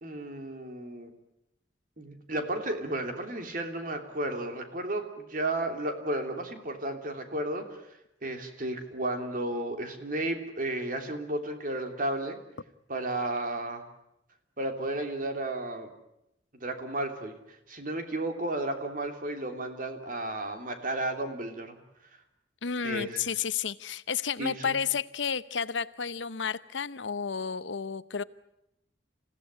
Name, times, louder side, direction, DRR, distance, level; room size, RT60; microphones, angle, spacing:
voice 1, 0.0-1.1 2.0-7.8 8.2-12.4 12.9-13.8 14.6-15.9 16.6-17.4 17.7-21.8 22.8-23.2 24.4-24.8, right 1 dB, 50° right, 5 dB, 3.2 m, -33 dB
voice 2, 22.6-28.2, left 6 dB, 85° left, 16 dB, 0.8 m, -31 dB
28.0 x 16.5 x 9.8 m, 0.85 s
head